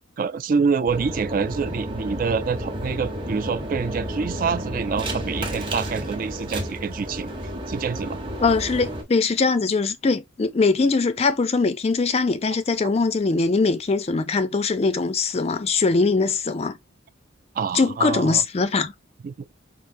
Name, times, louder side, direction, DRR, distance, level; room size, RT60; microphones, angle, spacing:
voice 1, 0.2-7.3 7.7-8.2 17.6-18.4 19.2-19.3, right 5 dB, 45° right, 0.3 m, -26 dB
sound 1, 0.9-9.0, right 1 dB, 25° right, 0.8 m, -31 dB
voice 2, 8.4-16.8 17.7-18.9, left 4 dB, 30° left, 0.4 m, -21 dB
4.5 x 2.5 x 2.6 m
head